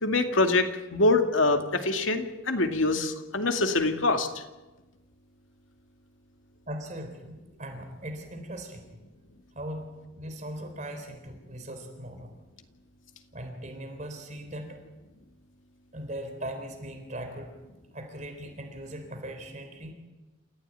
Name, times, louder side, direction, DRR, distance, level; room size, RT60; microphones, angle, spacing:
voice 1, 0.0-4.4, left 2 dB, 80° left, 5 dB, 2.3 m, -25 dB
voice 2, 6.7-8.9 9.5-12.3 13.3-14.8 15.9-17.5 17.9-19.9, right 1 dB, 40° right, 5 dB, 3.9 m, -39 dB
28.0 x 15.0 x 9.2 m, 1.1 s
head